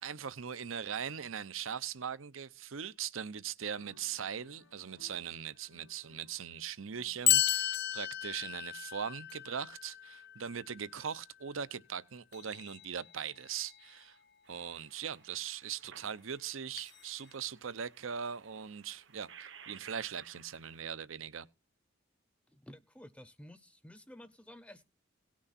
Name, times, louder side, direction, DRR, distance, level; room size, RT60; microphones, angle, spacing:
voice 1, 0.0-14.2 14.5-21.5, right 7 dB, 85° right, 0.7 m, -40 dB
sound 1, 3.7-9.2, left 3 dB, 75° left, 1.3 m, -65 dB
sound 2, 7.3-11.3 12.3-13.2 13.4-13.9 16.8-17.3, left 12 dB, 55° left, 0.6 m, -34 dB
sound 3, 14.4-20.8, right 7 dB, 65° right, 1.0 m, -57 dB
voice 2, 22.5-24.8, left 1 dB, 5° left, 0.6 m, -53 dB
18.0 x 6.3 x 4.2 m
head